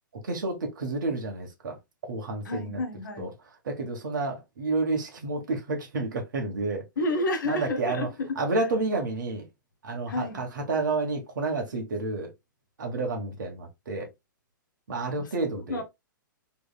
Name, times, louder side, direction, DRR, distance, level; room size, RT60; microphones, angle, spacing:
voice 1, 0.2-1.8 2.1-2.8 3.2-3.3 3.6-6.8 7.4-8.1 8.4-9.4 9.8-12.3 12.8-14.1 14.9-15.8, right 3 dB, 65° right, 1.4 m, -30 dB
voice 2, 2.4-3.3 7.0-8.6 10.1-10.4 15.2-15.3 15.7-15.8, left 2 dB, 65° left, 1.2 m, -30 dB
3.3 x 3.3 x 2.3 m
figure-of-eight pair, 110°, 11 cm